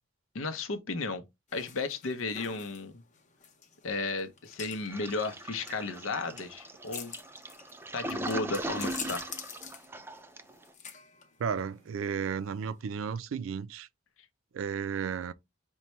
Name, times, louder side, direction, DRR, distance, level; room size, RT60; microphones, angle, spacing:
voice 1, 0.3-1.2 1.5-2.9 3.8-7.1 7.9-9.3, left 3 dB, 85° left, 0.7 m, -34 dB
sound 1, 1.5-12.8, left 7 dB, 40° left, 0.7 m, -47 dB
Toilet flush, 4.9-10.6, right 1 dB, 10° right, 0.3 m, -39 dB
voice 2, 11.4-13.9 14.5-15.3, right 7 dB, 90° right, 0.4 m, -33 dB
5.4 x 2.2 x 3.0 m
head